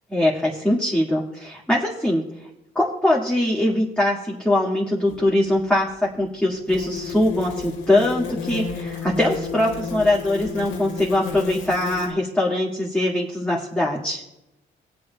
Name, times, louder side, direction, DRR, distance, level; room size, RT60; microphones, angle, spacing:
voice 1, 0.1-2.5 2.8-14.2, left 1 dB, 5° left, -6 dB, 2.1 m, -22 dB
sound 1, 5.1-5.2 6.7-12.1, left 5 dB, 80° left, 2.2 m, -32 dB
22.0 x 7.7 x 2.3 m, 0.90 s
cardioid pair, 90°, 20 cm